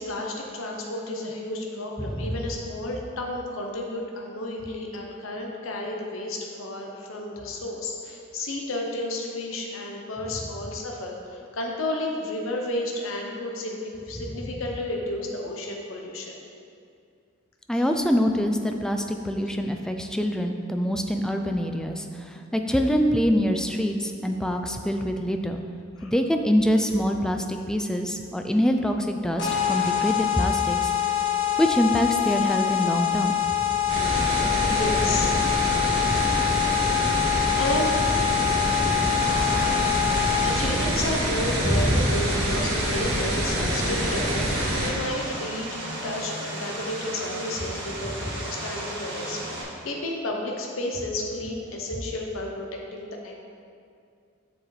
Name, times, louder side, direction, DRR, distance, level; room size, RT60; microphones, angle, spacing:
voice 1, 0.0-16.4 17.7-17.8 26.0-26.1 31.3-31.6 34.3-35.5 36.3-36.4 37.4-38.0 40.4-45.7 46.0-53.3, left 1 dB, 80° left, 0 dB, 0.8 m, -32 dB
voice 2, 2.1-2.4 17.7-25.6 26.0-30.9 31.6-33.4 35.9-36.2 38.8-39.2 39.6-39.7 41.6-42.1 48.0-48.1, equal, 5° left, 4 dB, 0.4 m, -25 dB
sound 1, 29.4-40.8, left 11 dB, 60° left, 1.5 m, -25 dB
sound 2, 33.9-44.9, right 1 dB, 85° right, 1.7 m, -26 dB
Vehicle, 39.1-49.6, right 1 dB, 60° right, 1.7 m, -35 dB
7.1 x 7.1 x 3.3 m, 2.4 s
head